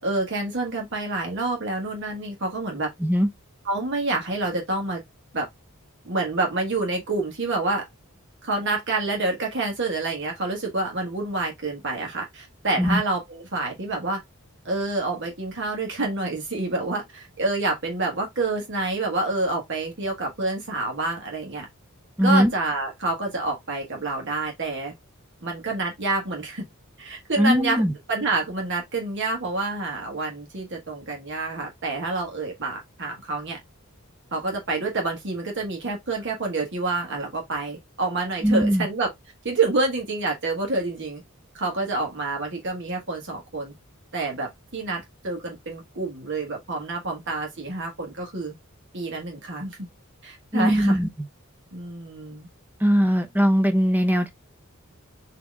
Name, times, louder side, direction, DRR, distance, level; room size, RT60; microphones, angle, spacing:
voice 1, 0.0-2.9 3.7-5.0 5.3-5.5 6.0-7.8 8.4-14.2 14.6-21.7 22.2-24.9 25.4-26.6 27.0-27.8 28.1-33.6 34.3-39.1 39.4-41.2 41.5-43.7 44.1-48.5 48.9-49.9 50.2-51.0 51.7-52.5, right 3 dB, 60° right, 1.3 m, -28 dB
voice 2, 22.2-22.5 27.4-27.9 38.4-38.9 50.5-51.3 52.8-54.3, equal, 10° right, 0.5 m, -20 dB
4.4 x 2.9 x 3.4 m
head